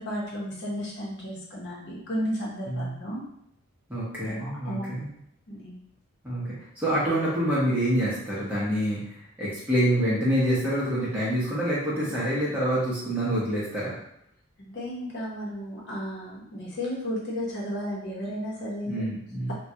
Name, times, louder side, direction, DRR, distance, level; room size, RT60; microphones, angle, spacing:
voice 1, 0.0-3.3 4.3-5.1 5.5-5.8 14.6-19.1, equal, 50° left, -4 dB, 1.0 m, -33 dB
voice 2, 3.9-5.1 6.2-9.0 9.4-13.9 18.8-19.5, equal, 10° right, -9 dB, 0.8 m, -26 dB
3.7 x 2.3 x 2.8 m, 0.74 s
head